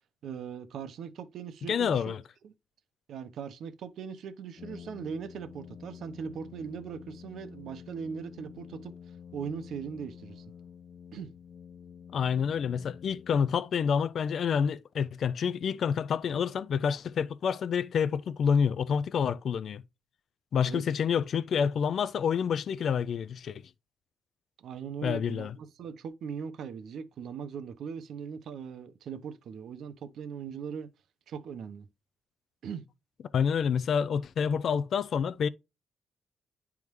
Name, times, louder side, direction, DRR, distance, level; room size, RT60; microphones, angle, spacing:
voice 1, 0.2-2.2 2.4-2.5 3.1-8.9 9.3-10.4 11.1-11.3 20.6-20.8 24.6-30.9 31.3-31.9 32.6-32.8, right 7 dB, 75° right, 0.8 m, -40 dB
voice 2, 1.7-2.2 12.1-19.8 20.5-23.6 25.0-25.6 33.3-35.5, left 7 dB, 60° left, 0.3 m, -28 dB
Brass instrument, 4.6-14.0, left 7 dB, 45° left, 0.8 m, -49 dB
10.5 x 3.5 x 3.1 m
cardioid pair, 130°, 0 cm